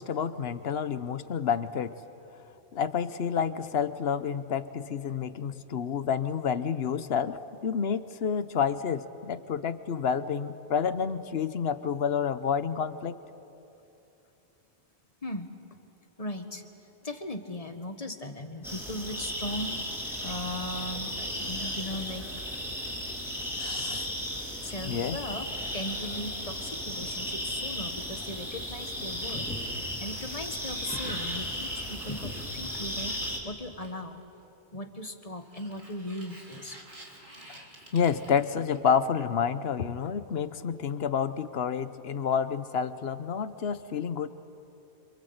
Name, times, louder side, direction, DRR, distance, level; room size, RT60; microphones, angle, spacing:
voice 1, 0.0-2.0 2.7-13.2 23.6-24.1 24.9-25.2 37.5-37.6 37.9-44.3, left 7 dB, 65° left, 13 dB, 1.1 m, -29 dB
voice 2, 15.2-15.5 16.2-19.8 20.2-22.3 24.6-25.5 25.7-34.2 34.7-36.8, left 1 dB, 35° left, 7 dB, 1.6 m, -38 dB
sound 1, 18.6-33.4, equal, ahead, 4.1 m, -35 dB
Sliding door, 29.6-34.2 35.4-39.1, right 1 dB, 50° right, 3.2 m, -49 dB
27.0 x 26.5 x 8.0 m, 2.9 s
omnidirectional pair, 1.1 m